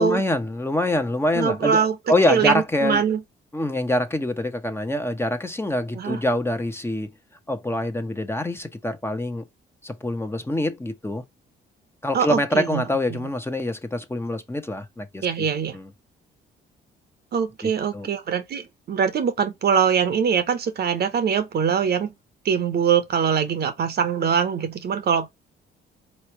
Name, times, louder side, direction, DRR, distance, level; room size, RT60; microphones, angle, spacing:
voice 1, 0.0-3.0 3.5-7.1 7.5-9.4 9.8-11.2 12.0-15.5 15.7-15.9 17.9-18.1, left 1 dB, 10° left, 0.8 m, -25 dB
voice 2, 1.3-2.0 2.3-3.2 5.9-6.2 12.1-12.8 13.1-13.2 15.2-15.8 17.3-22.1 22.4-25.3, right 7 dB, 55° right, 0.9 m, -23 dB
4.2 x 3.1 x 3.1 m
cardioid pair, 90°, 20 cm